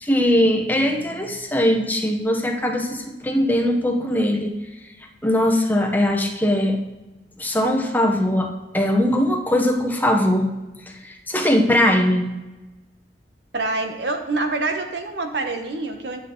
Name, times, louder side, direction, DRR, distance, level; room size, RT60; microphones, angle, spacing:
voice 1, 0.0-4.5 5.2-6.8 7.4-10.5 11.0-12.3, left 1 dB, 10° left, 2 dB, 1.0 m, -20 dB
voice 2, 13.5-16.2, right 3 dB, 70° right, 5 dB, 1.2 m, -26 dB
10.0 x 8.1 x 3.9 m, 1.1 s
head